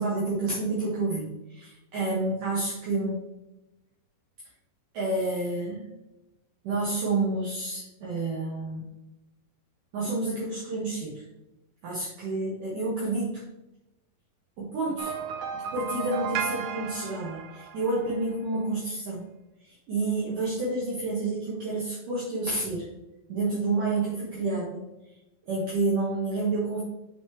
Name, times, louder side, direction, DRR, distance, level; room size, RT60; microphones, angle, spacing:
voice 1, 0.0-3.2 4.9-5.9 6.6-8.9 9.9-11.2 11.8-13.4 14.6-15.1 15.5-19.3 19.6-22.9 23.3-24.9 25.4-26.8, right 2 dB, 60° right, -6 dB, 2.6 m, -29 dB
sound 1, 15.0-18.3, right 7 dB, 90° right, 1.9 m, -34 dB
8.7 x 5.6 x 3.3 m, 0.96 s
omnidirectional pair, 5.1 m